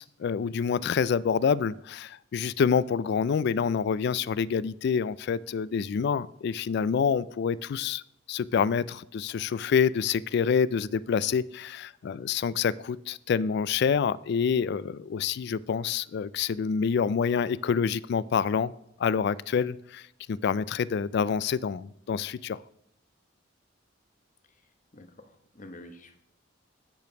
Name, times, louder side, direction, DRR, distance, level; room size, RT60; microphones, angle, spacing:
voice 1, 0.0-8.0 8.3-18.7 19.0-20.0 20.3-22.6, left 6 dB, 55° left, 20 dB, 0.3 m, -27 dB
voice 2, 24.9-26.2, left 1 dB, 40° left, 7 dB, 1.0 m, -47 dB
9.3 x 5.2 x 5.9 m, 0.76 s
head